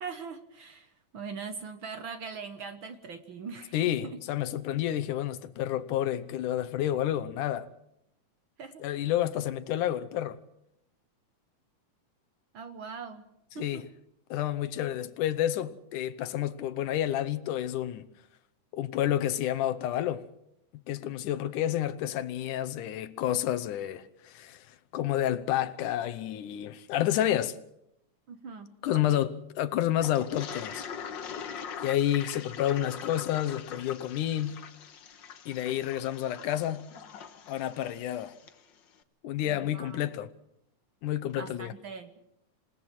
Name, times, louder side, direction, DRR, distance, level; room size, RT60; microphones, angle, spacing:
voice 1, 0.0-4.2 8.6-8.8 12.5-13.2 13.5-13.8 28.3-29.2 39.4-40.0 41.4-42.2, right 5 dB, 60° right, 1.4 m, -41 dB
voice 2, 3.7-7.7 8.8-10.4 13.6-13.9 14.3-18.1 18.7-20.3 20.7-24.6 24.9-27.6 28.8-29.3 29.6-30.9 31.8-34.6 35.5-36.8 37.5-38.4 39.2-40.3 41.0-41.7, left 12 dB, 85° left, 2.5 m, -30 dB
Toilet flush, 30.0-38.6, left 7 dB, 55° left, 1.3 m, -42 dB
27.5 x 18.0 x 6.0 m
omnidirectional pair, 3.6 m